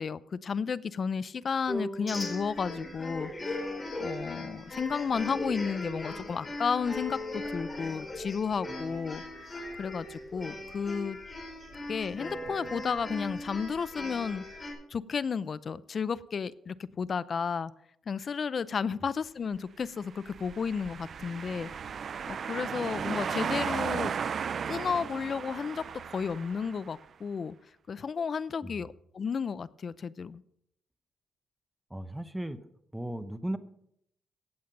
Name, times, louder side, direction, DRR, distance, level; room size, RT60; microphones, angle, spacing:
voice 1, 0.0-3.3 4.0-9.2 9.8-11.2 11.9-14.4 14.9-17.7 18.1-21.7 22.3-24.1 24.7-27.5 27.9-30.4, left 6 dB, 45° left, 17 dB, 0.5 m, -32 dB
sound 1, 1.7-4.9, equal, 10° left, 5.8 m, -42 dB
sound 2, 2.1-14.7, left 1 dB, 25° left, 4.5 m, -39 dB
sound 3, 20.2-26.9, right 7 dB, 50° right, 0.4 m, -35 dB
voice 2, 31.9-32.6 32.9-33.6, right 1 dB, 5° right, 12 dB, 0.9 m, -36 dB
17.5 x 7.4 x 5.3 m, 0.74 s
cardioid pair, 105°, 0 cm